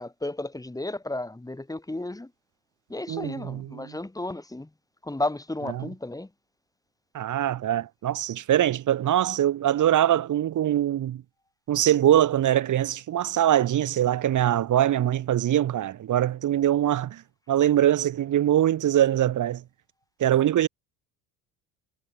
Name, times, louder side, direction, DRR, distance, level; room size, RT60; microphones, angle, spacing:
voice 1, 0.0-2.3 2.9-4.7 5.0-6.3, left 2 dB, 10° left, 2.7 m, -33 dB
voice 2, 3.1-4.0 5.8-5.9 7.1-11.2 11.7-17.2 17.5-19.6 20.2-20.7, right 11 dB, 45° right, 1.6 m, -23 dB
supercardioid pair, 80°, 40 cm